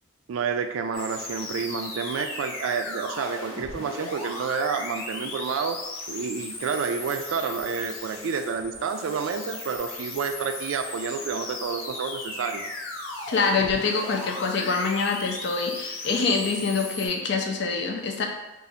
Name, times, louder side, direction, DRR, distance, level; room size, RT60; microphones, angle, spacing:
voice 1, 0.3-5.8 6.1-12.6, right 5 dB, 85° right, 7 dB, 0.3 m, -29 dB
sound 1, 0.9-17.1, left 2 dB, 85° left, 0.8 m, -37 dB
voice 2, 13.3-18.3, left 4 dB, 60° left, 3 dB, 0.4 m, -25 dB
2.6 x 2.4 x 4.0 m, 1.1 s
head